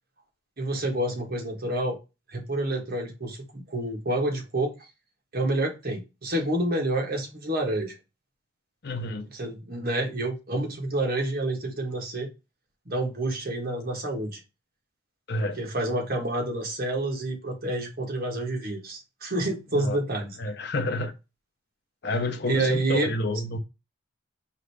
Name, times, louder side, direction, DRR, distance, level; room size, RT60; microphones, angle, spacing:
voice 1, 0.6-2.0 2.3-4.7 5.3-8.0 9.3-12.3 12.9-14.4 15.6-20.4 22.5-23.1, right 1 dB, 50° right, 1.2 m, -28 dB
voice 2, 8.8-9.3 15.3-15.6 19.7-20.0 20.4-21.1 22.0-23.6, left 2 dB, 55° left, 0.7 m, -29 dB
4.8 x 2.6 x 3.3 m
head